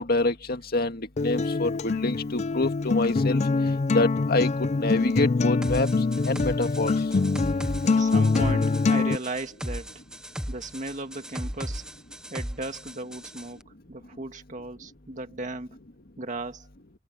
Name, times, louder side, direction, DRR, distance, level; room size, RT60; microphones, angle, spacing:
voice 1, 0.0-3.4 3.9-4.5 4.8-5.9 6.2-6.9, left 2 dB, 55° left, 2.0 m, -26 dB
Acoustic guitar, 1.2-9.2, left 3 dB, 35° left, 0.4 m, -24 dB
sound 1, 5.6-13.5, equal, 5° right, 0.8 m, -36 dB
voice 2, 7.8-10.0 10.5-11.9 12.3-15.8 16.2-16.7, right 2 dB, 40° right, 1.8 m, -36 dB
head